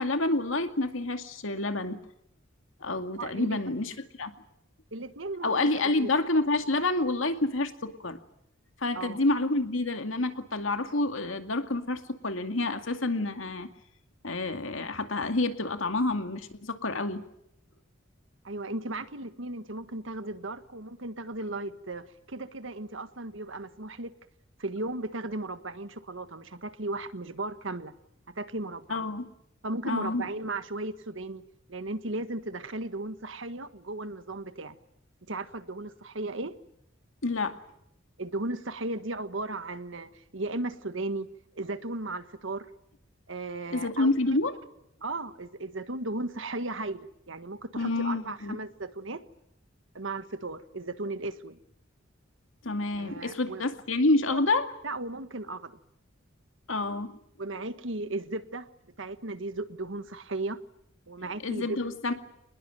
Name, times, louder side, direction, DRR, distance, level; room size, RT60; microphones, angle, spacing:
voice 1, 0.0-2.0 2.8-3.9 4.2-4.3 5.4-8.2 8.8-13.7 14.2-17.2 28.9-29.3 29.9-30.2 37.2-37.6 43.7-44.5 47.8-48.6 52.6-54.7 56.7-57.1 61.4-62.1, left 2 dB, 85° left, 8 dB, 2.2 m, -28 dB
voice 2, 3.2-3.6 4.9-6.1 8.9-9.2 18.4-24.1 24.6-27.9 28.3-29.1 29.6-31.4 31.7-34.7 35.3-36.5 38.2-41.3 41.5-42.7 43.3-44.1 45.0-49.2 49.9-51.6 53.0-53.6 54.3-54.4 54.8-55.8 57.4-58.7 59.0-60.6 61.1-61.8, right 2 dB, 70° right, 11 dB, 1.5 m, -36 dB
25.0 x 20.5 x 9.1 m, 0.78 s
head